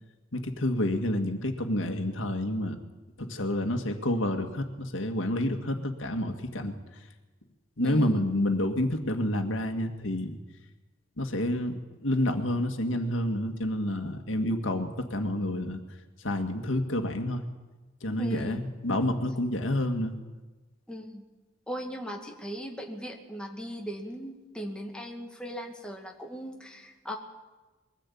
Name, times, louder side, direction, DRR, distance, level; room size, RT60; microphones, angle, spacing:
voice 1, 0.3-2.8 3.2-6.7 7.8-10.4 11.2-15.8 16.2-17.5 18.0-20.2, left 1 dB, 90° left, 6 dB, 2.0 m, -29 dB
voice 2, 7.8-8.3 18.2-18.6 20.9-21.2 21.7-27.2, equal, 5° left, 1 dB, 2.1 m, -38 dB
22.0 x 14.5 x 8.6 m, 1.2 s
head